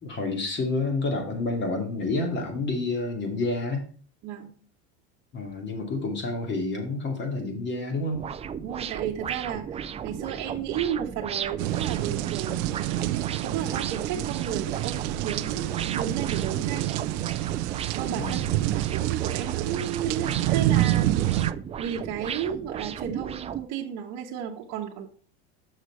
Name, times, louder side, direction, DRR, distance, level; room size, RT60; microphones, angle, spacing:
voice 1, 0.0-3.8 5.3-8.2 18.2-18.4, left 2 dB, 30° left, 3 dB, 2.5 m, -29 dB
voice 2, 4.2-4.5 8.6-12.6 13.4-17.0 17.9-18.4 18.7-21.5 21.8-25.1, right 9 dB, 55° right, -1 dB, 1.1 m, -33 dB
sound 1, 8.1-23.6, right 8 dB, 20° right, 0.4 m, -35 dB
sound 2, 11.6-21.5, right 15 dB, 75° right, 0.6 m, -28 dB
6.6 x 6.3 x 4.5 m, 0.41 s
supercardioid pair, 120°, 34 cm